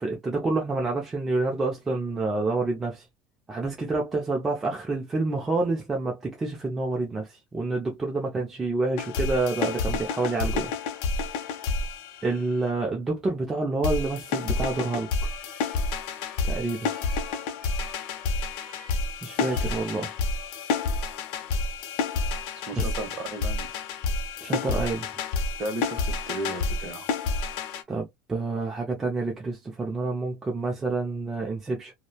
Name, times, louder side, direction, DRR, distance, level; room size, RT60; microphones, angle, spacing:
voice 1, 0.0-3.1 3.5-10.7 11.5-11.6 12.2-15.1 16.4-16.9 19.2-20.1 22.7-22.8 24.4-25.1 27.9-31.9, right 3 dB, 10° right, 0.4 m, -28 dB
sound 1, 9.0-12.7 13.8-27.8, left 4 dB, 60° left, 0.5 m, -29 dB
sound 2, 15.2-20.8, left 3 dB, 30° left, 1.0 m, -50 dB
voice 2, 19.4-19.7 22.7-23.9 25.6-27.1, right 2 dB, 30° right, 0.7 m, -35 dB
2.9 x 2.0 x 2.2 m
cardioid pair, 170°, 2 cm